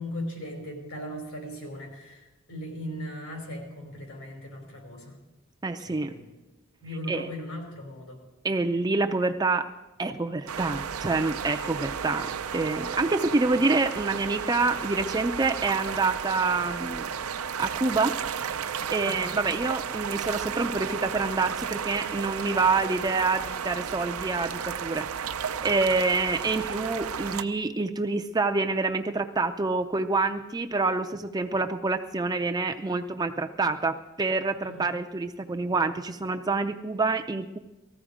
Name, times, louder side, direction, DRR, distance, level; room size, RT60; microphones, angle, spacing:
voice 1, 0.0-5.2 5.8-6.3 6.8-8.2 19.0-19.2 34.6-34.8, equal, 80° left, 1 dB, 5.0 m, -38 dB
voice 2, 5.6-6.1 7.1-7.3 8.4-9.7 10.0-17.0 17.5-37.6, right 3 dB, 20° right, 5 dB, 0.5 m, -27 dB
sound 1, 10.5-27.4, right 7 dB, 85° right, 0.6 m, -33 dB
18.5 x 14.5 x 5.0 m, 1.1 s
head